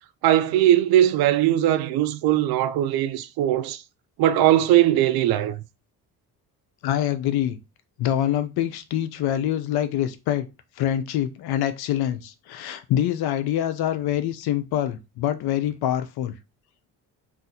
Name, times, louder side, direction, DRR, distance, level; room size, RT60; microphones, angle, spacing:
voice 1, 0.2-3.8 4.2-5.6, right 12 dB, 70° right, 0.5 m, -20 dB
voice 2, 6.8-7.6 8.0-10.5 10.8-16.3, left 11 dB, 75° left, 0.6 m, -25 dB
2.6 x 2.5 x 3.9 m
supercardioid pair, 75°, 38 cm